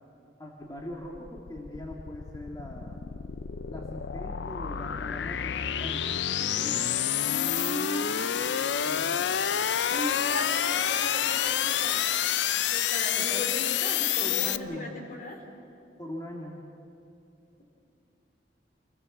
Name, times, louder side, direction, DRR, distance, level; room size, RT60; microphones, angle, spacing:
voice 1, 0.4-3.0 3.7-6.9 8.9-9.2 13.2-13.5 14.2-14.9 16.0-16.6, left 1 dB, 20° left, -1 dB, 1.9 m, -41 dB
sound 1, 0.8-14.6, left 9 dB, 75° left, 0.5 m, -28 dB
voice 2, 7.2-8.1 9.9-12.2 12.7-15.4, left 1 dB, 50° left, 2 dB, 3.3 m, -37 dB
27.5 x 19.0 x 7.2 m, 2.7 s
head